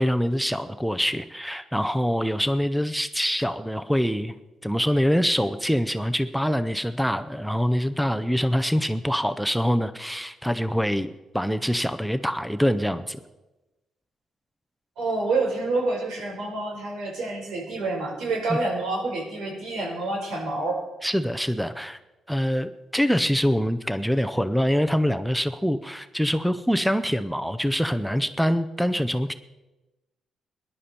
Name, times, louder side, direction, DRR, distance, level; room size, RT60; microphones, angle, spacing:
voice 1, 0.0-4.3 4.6-13.2 18.5-18.6 21.0-22.0 22.3-29.3, equal, ahead, 11 dB, 0.5 m, -24 dB
voice 2, 15.0-20.8, right 3 dB, 85° right, 1 dB, 4.6 m, -28 dB
19.5 x 11.0 x 4.4 m, 1.0 s
cardioid pair, 155°, 0 cm